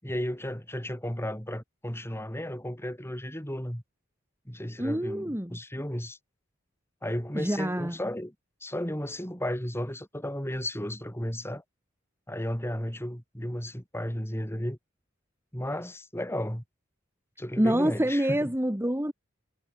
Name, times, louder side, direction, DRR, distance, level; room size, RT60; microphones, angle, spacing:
voice 1, 0.0-3.8 4.5-6.2 7.0-8.3 8.6-11.6 12.3-14.8 15.5-16.6 17.4-18.5, equal, 10° left, 6.2 m, -34 dB
voice 2, 4.8-5.6 7.4-7.9 17.6-19.1, right 1 dB, 10° right, 1.9 m, -26 dB
head